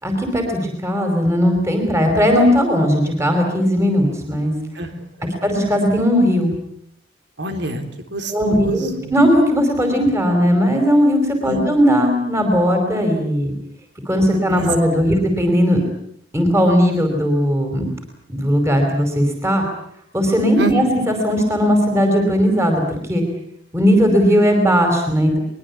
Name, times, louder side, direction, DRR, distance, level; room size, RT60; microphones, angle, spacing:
voice 1, 0.0-4.5 5.4-6.6 8.3-13.5 14.0-15.8 16.3-17.9 18.3-19.6 20.1-23.2 23.7-25.4, equal, 15° right, 4 dB, 5.1 m, -17 dB
voice 2, 4.7-5.3 7.4-9.1 11.4-11.6 14.5-14.7 14.9-15.0 20.6-20.7, right 2 dB, 65° right, 7 dB, 3.6 m, -27 dB
23.5 x 22.0 x 8.5 m, 0.70 s
head